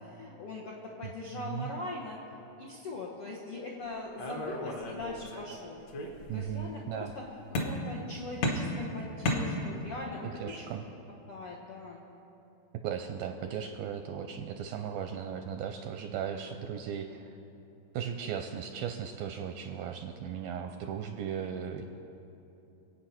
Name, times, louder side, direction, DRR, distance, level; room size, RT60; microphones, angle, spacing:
voice 1, 0.0-2.2 2.6-5.8 6.3-7.3 7.6-10.7 11.3-12.0, left 2 dB, 80° left, -4 dB, 1.2 m, -41 dB
voice 2, 1.3-1.7 6.3-7.1 10.2-10.8 12.8-17.3 17.9-21.8, right 8 dB, 85° right, 5 dB, 2.1 m, -37 dB
sound 1, 4.2-5.5 5.9-6.6 7.5-8.1 8.4-10.0, left 1 dB, 55° left, 2.0 m, -33 dB
25.0 x 8.7 x 5.8 m, 2.9 s
omnidirectional pair, 4.7 m